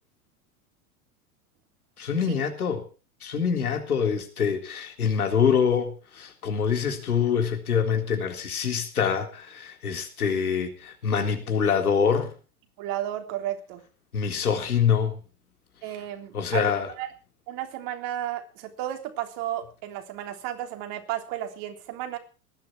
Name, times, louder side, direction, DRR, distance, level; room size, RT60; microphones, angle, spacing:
voice 1, 2.0-2.8 3.2-12.3 14.1-15.2 16.3-16.9, left 7 dB, 80° left, 5 dB, 3.8 m, -25 dB
voice 2, 12.8-13.8 15.8-17.1 17.5-22.2, right 12 dB, 50° right, 6 dB, 3.6 m, -33 dB
19.0 x 12.5 x 4.7 m, 0.35 s
hypercardioid pair, 90°, 43 cm